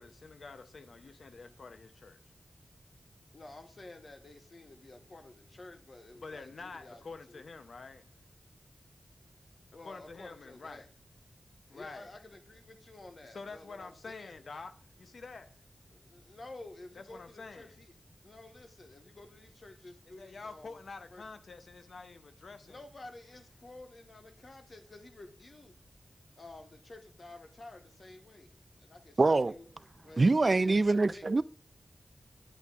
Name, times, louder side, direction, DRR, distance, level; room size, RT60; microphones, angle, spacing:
voice 1, 0.0-2.2 6.1-8.0 9.8-10.9 11.7-12.1 13.3-15.6 17.0-17.8 20.2-22.8, left 4 dB, 85° left, 0.6 m, -47 dB
voice 2, 3.3-7.4 9.7-10.9 11.7-14.3 15.9-17.9 18.2-20.8 21.1-21.2 22.6-25.7 26.4-29.7 30.0-31.3, left 2 dB, 50° left, 1.0 m, -51 dB
voice 3, 29.2-29.5 30.2-31.4, right 3 dB, 45° right, 0.3 m, -24 dB
9.7 x 8.2 x 2.4 m
wide cardioid pair, 95°, 0 cm